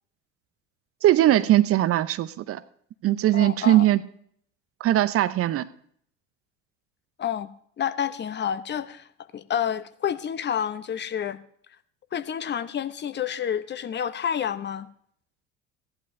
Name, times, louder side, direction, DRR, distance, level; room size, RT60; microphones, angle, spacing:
voice 1, 1.0-2.6 3.0-4.0 4.8-5.7, right 13 dB, 35° right, 15 dB, 0.6 m, -20 dB
voice 2, 3.3-3.9 7.2-7.5 7.8-9.1 9.3-11.4 12.1-14.9, left 8 dB, 25° left, 13 dB, 0.8 m, -29 dB
16.5 x 11.5 x 2.7 m, 0.62 s
figure-of-eight pair, 70°, 39 cm